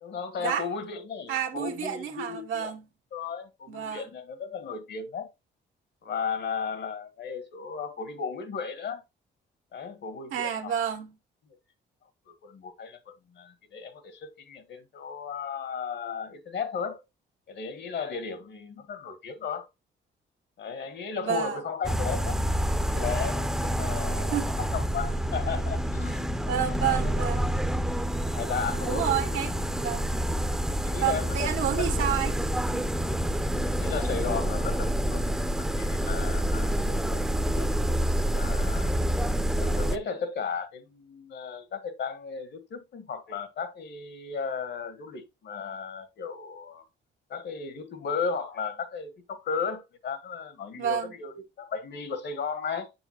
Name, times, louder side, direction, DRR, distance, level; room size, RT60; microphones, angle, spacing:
voice 1, 0.0-2.7 3.1-5.3 6.0-9.0 9.7-10.7 12.3-17.0 17.5-19.7 20.6-22.4 22.7-26.4 26.8-27.2 28.3-29.3 30.7-32.1 33.7-35.2 35.7-37.7 38.0-38.9 39.6-46.8 47.3-52.9, left 6 dB, 60° left, 1.4 m, -35 dB
voice 2, 1.3-2.8 3.7-4.1 10.3-11.1 21.2-21.6 24.3-24.5 26.5-27.5 28.8-30.1 31.0-32.4 32.7-32.9 50.8-51.1, right 9 dB, 85° right, 1.6 m, -30 dB
sound 1, 21.8-40.0, equal, ahead, 0.6 m, -28 dB
7.0 x 6.8 x 2.9 m
cardioid pair, 90°, 20 cm